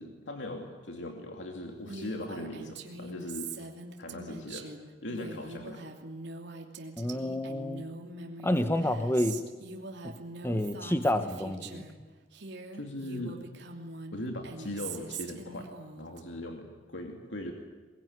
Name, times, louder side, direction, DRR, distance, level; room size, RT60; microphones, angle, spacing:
voice 1, 0.0-3.5 4.0-4.7 5.0-5.9 12.7-13.4 14.1-15.7 16.0-17.5, left 1 dB, 75° left, 2 dB, 2.7 m, -39 dB
Female speech woman speaking, 1.9-12.0 12.3-16.2, right 3 dB, 65° right, 2.9 m, -43 dB
voice 2, 7.0-7.8 8.4-9.4 10.0-10.1 10.4-11.8, left 1 dB, 15° left, 9 dB, 1.3 m, -29 dB
22.5 x 22.0 x 9.7 m, 1.4 s
head